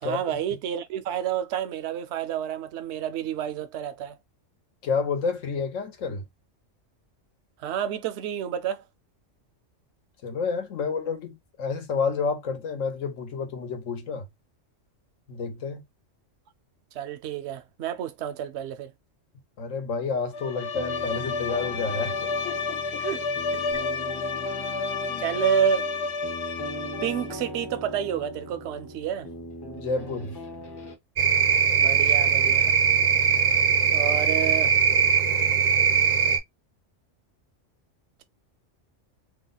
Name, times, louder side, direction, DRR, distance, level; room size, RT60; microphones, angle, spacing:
voice 1, 0.0-4.2 7.6-8.8 16.9-18.9 23.0-23.2 23.5-23.9 25.2-25.9 27.0-29.3 31.8-32.7 33.9-34.7, right 9 dB, 70° right, 0.8 m, -29 dB
voice 2, 4.8-6.2 10.2-14.3 15.3-15.8 19.6-23.0 25.1-25.2 29.8-30.4, left 5 dB, 80° left, 1.3 m, -30 dB
Bowed string instrument, 20.3-27.4, left 4 dB, 65° left, 0.8 m, -31 dB
sound 1, 20.7-31.0, left 1 dB, 25° left, 0.5 m, -40 dB
sound 2, 31.2-36.4, right 7 dB, 50° right, 0.5 m, -21 dB
2.9 x 2.1 x 3.8 m
omnidirectional pair, 1.3 m